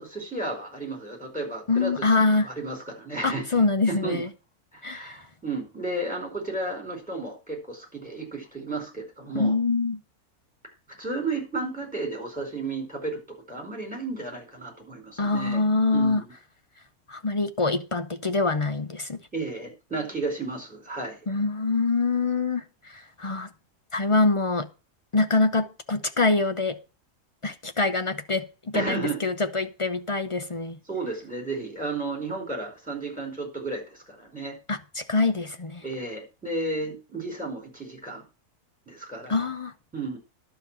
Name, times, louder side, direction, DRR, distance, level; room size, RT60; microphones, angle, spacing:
voice 1, 0.0-4.2 4.7-9.6 10.9-15.6 15.9-16.3 19.3-21.2 28.7-29.2 30.9-34.6 35.8-38.2 38.9-39.4 39.9-40.2, right 3 dB, 5° right, 4.7 m, -33 dB
voice 2, 1.7-2.5 3.2-4.3 4.8-5.2 9.3-10.0 15.2-16.2 17.1-19.2 21.3-23.5 23.9-24.7 25.1-26.8 27.4-28.5 28.7-30.8 34.7-35.8 39.3-39.7, left 3 dB, 40° left, 0.4 m, -25 dB
11.5 x 5.1 x 7.6 m
omnidirectional pair, 1.6 m